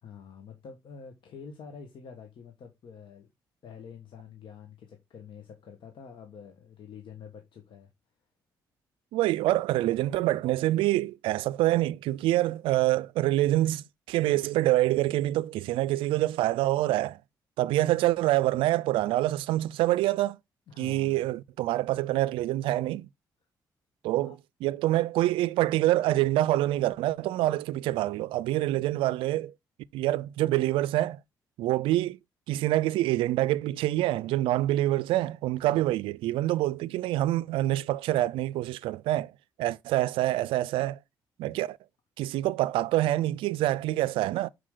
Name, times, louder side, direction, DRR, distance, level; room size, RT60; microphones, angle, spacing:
voice 1, 0.0-3.3 3.6-7.9 20.7-21.3 24.1-24.3, left 6 dB, 65° left, 1.3 m, -47 dB
voice 2, 9.1-17.2 17.6-20.4 20.8-23.1 24.0-24.4 24.6-29.5 29.9-31.2 31.6-32.2 32.5-39.3 39.6-41.0 41.4-41.8 42.2-44.5, right 15 dB, 80° right, 0.4 m, -26 dB
6.3 x 4.7 x 3.7 m
supercardioid pair, 60°, 9 cm